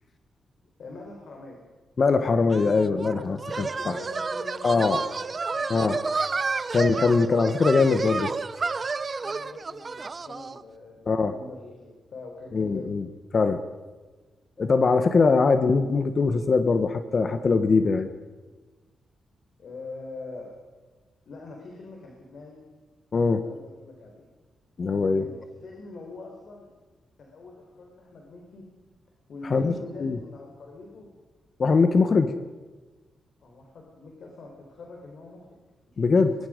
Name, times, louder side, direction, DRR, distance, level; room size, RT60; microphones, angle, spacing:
voice 1, 0.8-1.6 3.6-5.9 6.3-6.5 9.2-12.9 19.6-20.5 21.3-22.6 23.4-24.2 25.2-26.7 27.2-28.7 29.3-31.1 33.4-35.6 35.9-36.2, left 3 dB, 60° left, 0 dB, 4.1 m, -44 dB
voice 2, 2.0-4.0 4.6-5.0 5.7-6.3 6.7-8.3 11.1-11.3 12.5-13.0 13.3-13.6 14.6-18.1 23.1-23.4 24.8-25.3 29.5-29.7 30.0-30.2 31.6-32.3 36.0-36.3, left 4 dB, 40° left, 9 dB, 1.1 m, -22 dB
sound 1, 2.5-10.6, right 4 dB, 30° right, 0.7 m, -31 dB
22.5 x 22.5 x 5.2 m, 1.3 s
wide cardioid pair, 135°, 0 cm